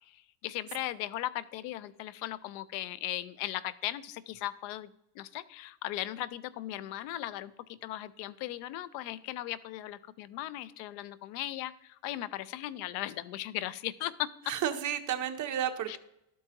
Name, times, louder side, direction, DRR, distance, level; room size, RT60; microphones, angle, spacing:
voice 1, 0.1-14.5 15.9-16.0, left 14 dB, 85° left, 17 dB, 0.6 m, -38 dB
voice 2, 14.5-16.0, right 9 dB, 35° right, 8 dB, 0.7 m, -32 dB
12.5 x 4.6 x 2.9 m, 0.83 s
cardioid pair, 130°, 50 cm